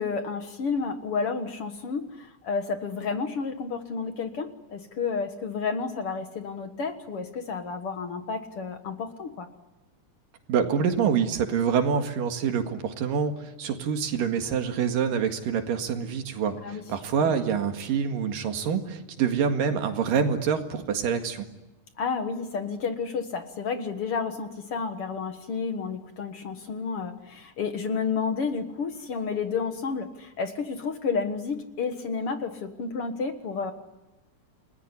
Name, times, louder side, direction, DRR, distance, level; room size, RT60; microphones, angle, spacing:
voice 1, 0.0-9.5 16.5-16.9 17.2-17.3 22.0-33.7, left 5 dB, 50° left, 8 dB, 2.0 m, -31 dB
voice 2, 10.5-21.5, right 7 dB, 90° right, 6 dB, 3.7 m, -26 dB
29.0 x 20.5 x 9.8 m, 1.0 s
omnidirectional pair, 3.7 m